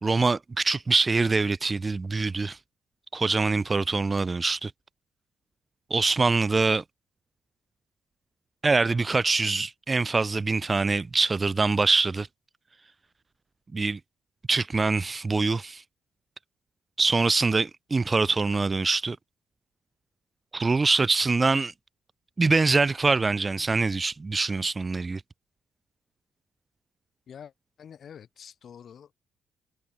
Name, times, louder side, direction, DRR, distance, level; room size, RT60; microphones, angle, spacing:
voice 1, 0.0-2.6 3.1-4.7 5.9-6.8 8.6-12.3 13.7-14.0 14.5-15.8 17.0-19.2 20.5-21.7 22.4-25.2, right 3 dB, 25° right, 0.4 m, -24 dB
voice 2, 27.3-29.1, left 8 dB, 55° left, 7.8 m, -47 dB
cardioid pair, 90°, 0 cm